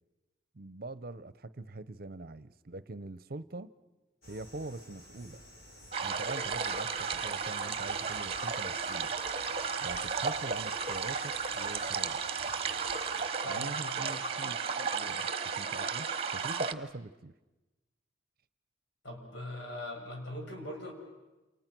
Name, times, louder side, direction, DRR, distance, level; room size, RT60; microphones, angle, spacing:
voice 1, 0.5-3.7 4.3-5.4 6.0-9.1 9.8-12.2 13.5-17.3, right 2 dB, 50° right, 16 dB, 0.8 m, -44 dB
sound 1, 4.2-13.3, equal, 50° left, 4.3 m, -53 dB
sound 2, 5.9-16.7, right 5 dB, 30° right, 1.1 m, -34 dB
voice 2, 13.4-14.3 19.0-20.9, left 1 dB, 70° left, 1 dB, 6.4 m, -41 dB
29.0 x 29.0 x 6.1 m, 1.1 s
head